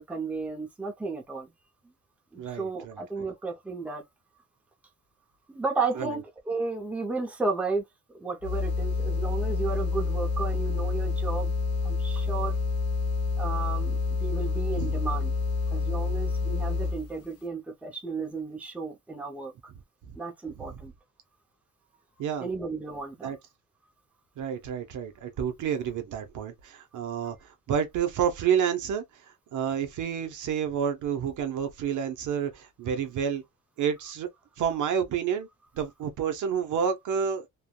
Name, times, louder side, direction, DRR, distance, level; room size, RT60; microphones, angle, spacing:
voice 1, 0.0-1.5 2.3-4.0 5.5-11.5 11.8-12.6 13.4-15.3 15.7-19.5 20.2-20.9 22.4-23.3 27.2-27.3, right 4 dB, 5° right, 0.6 m, -33 dB
voice 2, 2.4-3.3 6.0-6.2 14.7-15.0 20.1-20.2 20.6-20.8 22.2-22.5 23.2-23.4 24.4-33.4 33.8-34.3 34.6-35.5 35.7-37.5, right 8 dB, 65° right, 0.7 m, -30 dB
sound 1, 8.4-17.1, left 4 dB, 50° left, 0.6 m, -28 dB
3.3 x 2.2 x 2.2 m
cardioid pair, 180°, 32 cm